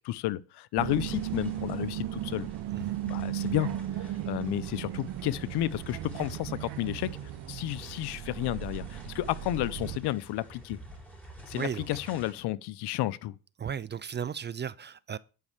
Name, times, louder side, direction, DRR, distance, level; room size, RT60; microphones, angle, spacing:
voice 1, 0.0-2.5 3.0-3.7 4.0-7.1 7.5-10.8 11.5-13.4, left 15 dB, 70° left, 0.8 m, -32 dB
sound 1, 0.8-10.0, right 13 dB, 70° right, 1.0 m, -36 dB
sound 2, 1.0-12.3, right 1 dB, 5° left, 4.6 m, -50 dB
voice 2, 11.5-11.9 13.6-15.2, right 7 dB, 25° right, 0.4 m, -35 dB
10.5 x 5.5 x 6.5 m
cardioid pair, 95°, 41 cm